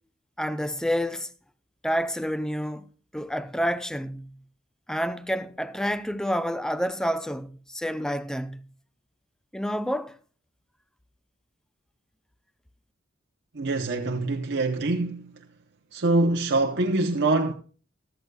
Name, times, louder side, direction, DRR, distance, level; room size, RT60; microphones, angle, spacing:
voice 1, 0.4-1.3 1.8-4.4 4.9-8.7 9.5-10.2, equal, 5° left, 0.5 m, -29 dB
voice 2, 13.5-15.4 15.9-17.5, right 2 dB, 60° right, 0.8 m, -24 dB
14.5 x 13.0 x 2.3 m
head